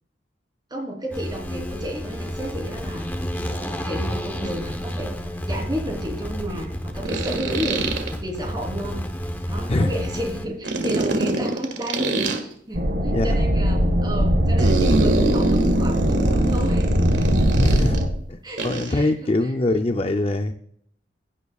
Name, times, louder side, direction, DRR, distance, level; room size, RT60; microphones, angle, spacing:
voice 1, 0.7-3.1 3.4-5.1 5.5-7.8 8.2-9.0 9.5-17.5 18.4-19.5, equal, 25° right, 0 dB, 3.5 m, -32 dB
sound 1, 1.1-10.5, equal, 10° left, 0.9 m, -31 dB
sound 2, 4.5-4.6 7.0-8.1 10.6-12.4 14.6-18.0 18.6-18.9, right 2 dB, 85° right, 1.7 m, -24 dB
sound 3, 12.7-18.1, equal, 70° right, 1.6 m, -20 dB
voice 2, 17.6-18.0 18.3-20.5, left 2 dB, 30° left, 6 dB, 0.5 m, -23 dB
16.5 x 9.5 x 2.4 m, 0.64 s
head